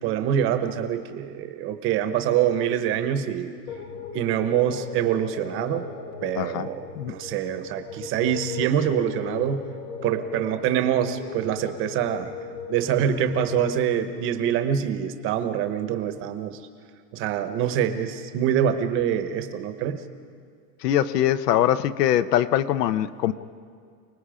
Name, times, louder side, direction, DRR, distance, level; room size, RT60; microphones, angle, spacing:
voice 1, 0.0-3.5 4.1-5.9 6.2-9.7 10.0-12.3 12.7-16.6 17.1-20.0, right 9 dB, 25° right, 9 dB, 1.0 m, -25 dB
sound 1, 3.7-13.8, left 4 dB, 15° left, 0.6 m, -37 dB
voice 2, 6.4-6.7 7.0-7.1 20.8-23.3, left 11 dB, 75° left, 14 dB, 1.0 m, -22 dB
29.5 x 19.5 x 5.0 m, 2.1 s
supercardioid pair, 160°, 48 cm